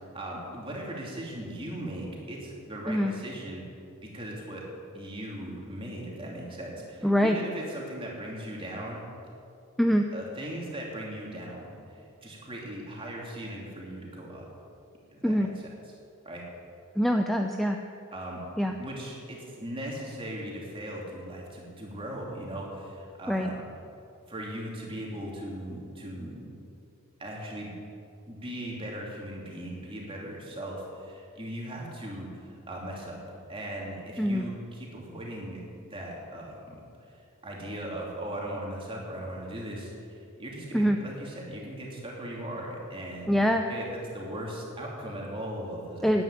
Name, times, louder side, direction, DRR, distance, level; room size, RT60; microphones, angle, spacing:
voice 1, 0.0-3.6 4.0-4.6 4.9-9.0 10.1-14.5 15.1-15.7 16.2-16.4 18.1-18.4 18.8-23.6 24.3-26.5 27.2-27.7 28.3-33.2 33.5-36.8 37.4-43.4 43.7-43.8 44.1-46.1, right 1 dB, 25° right, -2 dB, 2.9 m, -38 dB
voice 2, 7.0-7.4 9.8-10.0 15.2-15.5 17.0-17.8 18.6-18.8 23.3-23.5 34.2-34.5 40.7-41.0 43.3-43.6 46.0-46.2, equal, ahead, 4 dB, 0.5 m, -24 dB
11.0 x 10.5 x 9.7 m, 2.6 s
head